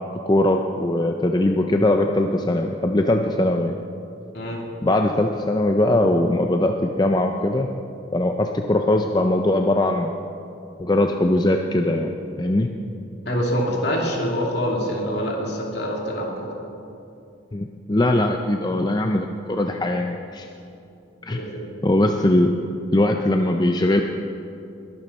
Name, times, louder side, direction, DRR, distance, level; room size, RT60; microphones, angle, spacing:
voice 1, 0.1-3.8 4.8-7.7 8.1-10.1 10.8-12.7 17.5-20.5 21.2-21.4 21.8-22.5 22.9-24.0, left 1 dB, 20° left, 4 dB, 0.5 m, -21 dB
voice 2, 13.3-16.5 21.3-21.7, equal, 55° left, -1 dB, 2.7 m, -25 dB
21.0 x 11.5 x 4.3 m, 2.7 s
head